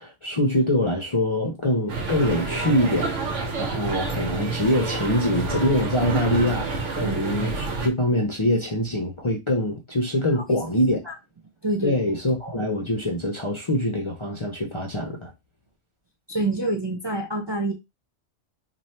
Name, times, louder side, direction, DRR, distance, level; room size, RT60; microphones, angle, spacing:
voice 1, 0.0-11.0 11.8-15.3, left 1 dB, 35° left, 0.5 m, -24 dB
sound 1, 1.9-7.9, right 3 dB, 85° right, 1.2 m, -28 dB
voice 2, 11.6-11.9 16.3-17.7, right 2 dB, 30° right, 0.5 m, -26 dB
3.2 x 2.5 x 4.1 m
omnidirectional pair, 1.2 m